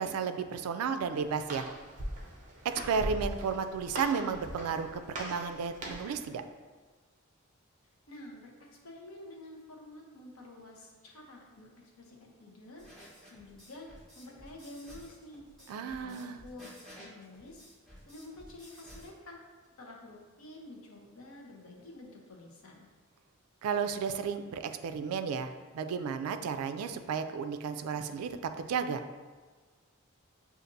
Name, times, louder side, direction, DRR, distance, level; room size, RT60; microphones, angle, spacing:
voice 1, 0.0-1.7 2.6-6.4 15.7-16.4 23.6-29.0, right 6 dB, 85° right, 11 dB, 0.3 m, -33 dB
Walk footsteps, 0.8-6.2, right 1 dB, 35° right, 0.6 m, -41 dB
voice 2, 8.1-12.8 13.3-13.9 14.1-15.5 16.0-17.6 18.1-19.4 19.8-22.9, left 2 dB, 75° left, -1 dB, 0.8 m, -49 dB
sound 1, 12.8-19.1, equal, ahead, 1.0 m, -53 dB
6.5 x 2.5 x 2.6 m, 1.4 s
head